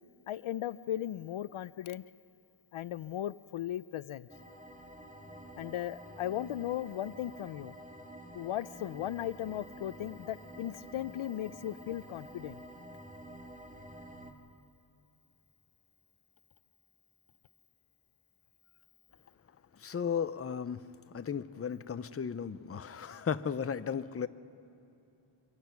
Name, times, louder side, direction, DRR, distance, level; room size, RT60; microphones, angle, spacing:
voice 1, 0.3-2.0 2.7-4.3 5.6-7.8 8.3-12.6, left 12 dB, 80° left, 17 dB, 0.5 m, -37 dB
sound 1, 4.3-14.3, right 1 dB, 15° right, 1.8 m, -49 dB
voice 2, 19.8-20.9 21.1-24.3, left 7 dB, 30° left, 13 dB, 0.6 m, -35 dB
25.0 x 24.5 x 5.8 m, 2.9 s
wide cardioid pair, 95°, 48 cm